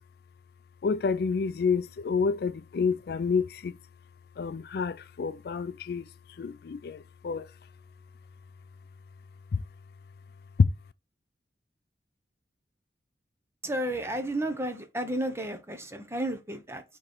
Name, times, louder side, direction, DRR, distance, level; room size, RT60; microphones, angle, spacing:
voice 1, 0.8-3.7 4.4-6.1 6.4-7.5 9.5-9.6 10.6-10.7, left 5 dB, 60° left, 0.4 m, -28 dB
voice 2, 13.6-16.8, right 1 dB, 15° right, 0.9 m, -32 dB
7.4 x 3.1 x 4.3 m
head